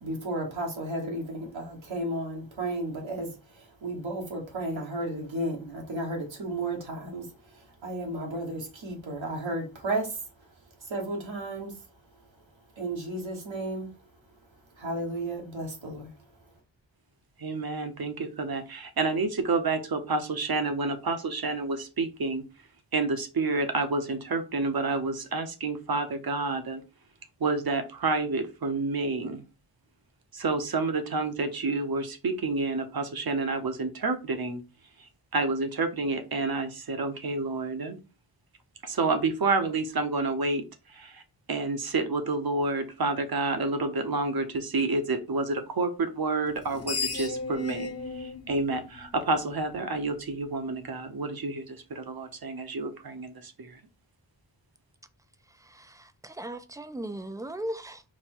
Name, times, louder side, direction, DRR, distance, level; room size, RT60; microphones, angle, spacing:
voice 1, 0.0-10.2 10.8-11.8 12.7-13.9 14.7-16.1, right 1 dB, 80° right, 1.4 m, -33 dB
voice 2, 17.4-22.4 22.9-26.8 27.4-29.4 30.3-34.6 35.0-38.0 38.8-41.2 41.5-53.8, right 3 dB, 50° right, 0.9 m, -29 dB
Screech, 46.5-49.8, left 4 dB, 35° left, 0.9 m, -35 dB
voice 3, 55.5-58.0, right 1 dB, 10° right, 0.4 m, -38 dB
4.1 x 2.2 x 4.3 m
wide cardioid pair, 65°, 45 cm